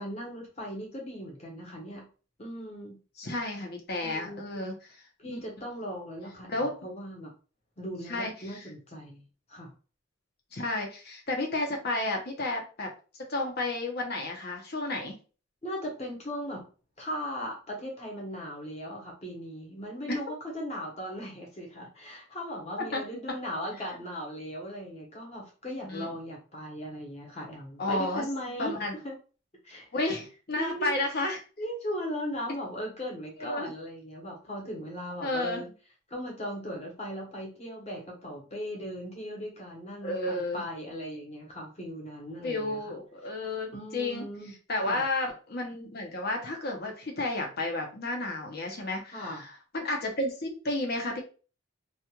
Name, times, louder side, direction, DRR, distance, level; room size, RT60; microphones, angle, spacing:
voice 1, 0.0-2.1 2.4-3.0 4.0-4.7 5.2-7.3 7.8-9.2 9.5-9.7 15.6-16.7 17.0-29.1 29.6-29.9 30.6-30.9 31.6-35.7 36.1-42.8 43.7-44.5 44.8-45.0 49.1-49.4, equal, 35° left, -1 dB, 1.0 m, -38 dB
voice 2, 3.2-4.8 5.2-5.4 6.5-6.8 8.1-8.3 10.5-12.9 13.3-15.2 22.9-23.0 23.3-23.4 25.8-26.1 27.8-28.2 28.6-28.9 29.9-30.2 30.5-31.4 33.4-33.7 35.2-35.7 40.0-40.6 42.4-44.2 44.7-51.2, left 2 dB, 50° left, 2 dB, 0.8 m, -32 dB
2.4 x 2.3 x 2.9 m, 0.36 s
head